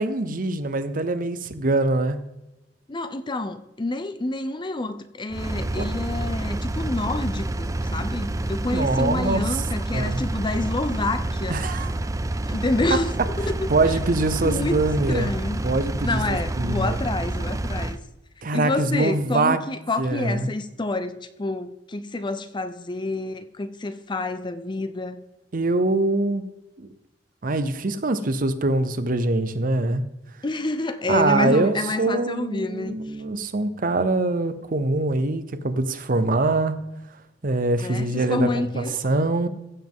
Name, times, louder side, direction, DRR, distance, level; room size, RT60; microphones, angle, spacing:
voice 1, 0.0-2.2 5.8-5.9 8.7-9.6 9.9-10.2 11.5-11.9 13.7-15.3 15.6-17.0 18.4-19.6 20.0-20.5 25.5-26.4 26.8-26.9 27.4-30.0 31.1-36.8 37.4-39.5, right 2 dB, 50° right, 0.8 m, -23 dB
voice 2, 2.9-11.7 12.5-13.7 14.4-14.8 15.1-15.6 16.0-18.0 18.5-25.2 30.4-33.0 37.8-39.0, left 2 dB, 25° left, 0.6 m, -28 dB
Engine, 5.3-18.0, right 1 dB, 20° right, 0.5 m, -28 dB
15.5 x 7.5 x 3.7 m
head